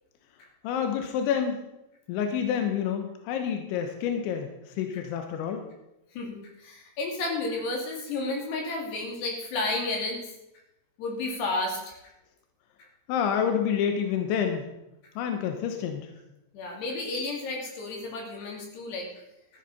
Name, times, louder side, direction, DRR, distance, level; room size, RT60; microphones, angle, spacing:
voice 1, 0.6-1.6 2.1-5.7 13.1-14.7 15.2-16.1, left 8 dB, 85° left, 5 dB, 3.4 m, -28 dB
voice 2, 6.1-10.3 11.0-12.0 16.5-19.1, left 2 dB, 65° left, 0 dB, 4.5 m, -32 dB
13.5 x 13.0 x 4.1 m, 0.90 s
omnidirectional pair, 5.3 m